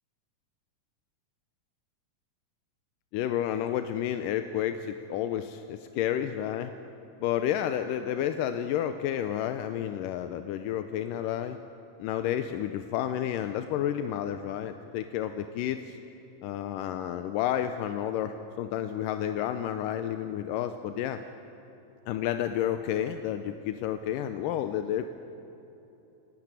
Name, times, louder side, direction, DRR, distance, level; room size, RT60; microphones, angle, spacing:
voice 1, 3.1-6.7 7.2-11.6 12.0-16.0 16.4-21.2 22.1-25.1, left 10 dB, 85° left, 9 dB, 2.3 m, -30 dB
27.0 x 12.0 x 9.0 m, 3.0 s
omnidirectional pair, 3.9 m